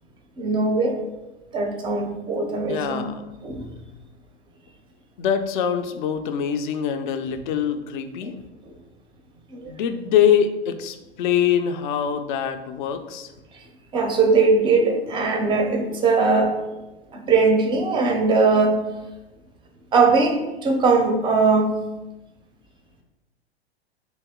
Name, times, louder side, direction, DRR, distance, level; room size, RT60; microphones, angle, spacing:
voice 1, 0.4-1.0 1.5-3.1 3.4-3.6 8.2-8.3 9.5-9.7 13.9-16.7 17.1-18.9 19.9-21.8, right 4 dB, 15° right, 3 dB, 0.5 m, -20 dB
voice 2, 2.6-3.2 5.2-8.3 9.7-13.3, left 8 dB, 50° left, 9 dB, 0.4 m, -23 dB
3.0 x 2.6 x 3.6 m, 1.0 s
hypercardioid pair, 100°, 32 cm